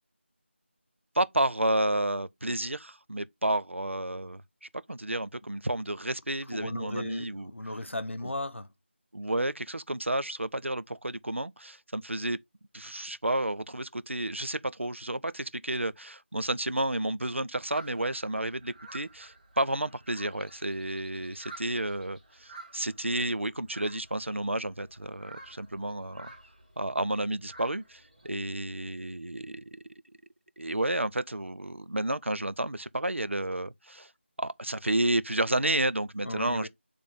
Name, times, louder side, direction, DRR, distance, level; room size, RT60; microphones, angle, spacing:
voice 1, 1.1-7.5 8.2-8.3 9.1-12.4 12.7-26.3 26.8-29.6 30.6-34.1 34.4-36.7, right 1 dB, 75° right, 0.6 m, -31 dB
voice 2, 6.5-8.7 36.2-36.7, left 1 dB, 75° left, 0.9 m, -36 dB
sound 1, 17.7-28.3, right 2 dB, 35° right, 1.9 m, -51 dB
8.8 x 3.4 x 3.5 m
figure-of-eight pair, 165°, 7 cm